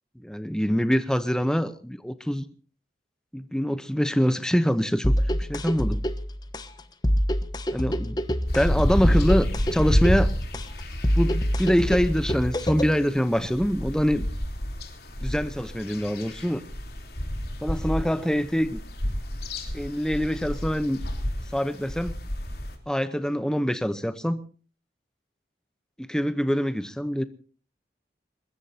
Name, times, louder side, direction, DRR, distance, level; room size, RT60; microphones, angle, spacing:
voice 1, 0.3-2.5 3.3-5.1 5.4-6.0 7.7-8.2 8.5-10.3 11.1-14.3 15.2-16.6 17.6-18.8 19.7-21.0 21.5-22.1 22.9-24.4 26.0-27.2, equal, 5° left, 11 dB, 0.8 m, -25 dB
sound 1, 5.0-13.0, equal, 25° left, 1.0 m, -26 dB
sound 2, 8.5-22.8, equal, 65° left, 3.4 m, -30 dB
23.0 x 21.5 x 2.8 m, 0.39 s
head